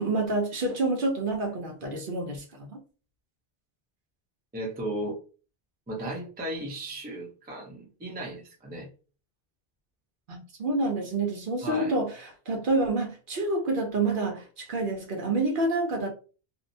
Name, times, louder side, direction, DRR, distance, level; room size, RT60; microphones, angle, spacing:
voice 1, 0.0-2.8 10.3-16.1, right 2 dB, 60° right, 0.8 m, -28 dB
voice 2, 4.5-5.2 5.9-8.9 11.6-11.9, right 1 dB, 15° right, 0.4 m, -35 dB
2.7 x 2.0 x 2.6 m
omnidirectional pair, 1.1 m